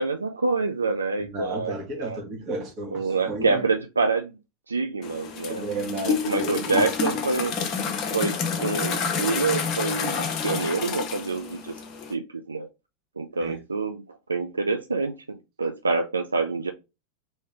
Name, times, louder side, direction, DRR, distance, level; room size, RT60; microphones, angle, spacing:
voice 1, 0.0-2.2 2.9-4.4 4.7-5.7 6.0-7.5 8.1-11.7 12.1-12.7 13.2-16.7, right 4 dB, 75° right, 0.3 m, -27 dB
voice 2, 1.2-3.6 5.5-6.9 13.4-13.6, right 2 dB, 35° right, 1.1 m, -33 dB
sound 1, 5.0-12.1, left 6 dB, 35° left, 0.7 m, -29 dB
3.2 x 2.7 x 3.5 m
figure-of-eight pair, 90°, 0 cm